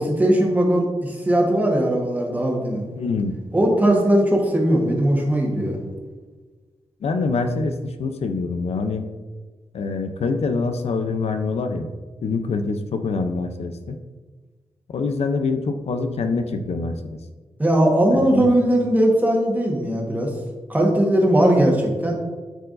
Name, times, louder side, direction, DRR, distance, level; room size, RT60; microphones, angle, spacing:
voice 1, 0.0-2.8 3.5-5.8 17.6-20.3 20.7-22.1, right 1 dB, 15° right, -1 dB, 1.3 m, -19 dB
voice 2, 3.0-3.3 7.0-9.0 9.7-11.9 12.2-14.0 14.9-17.0 18.1-18.5, left 4 dB, 85° left, 7 dB, 0.6 m, -25 dB
12.5 x 4.5 x 2.6 m, 1.3 s
wide cardioid pair, 155°, 10 cm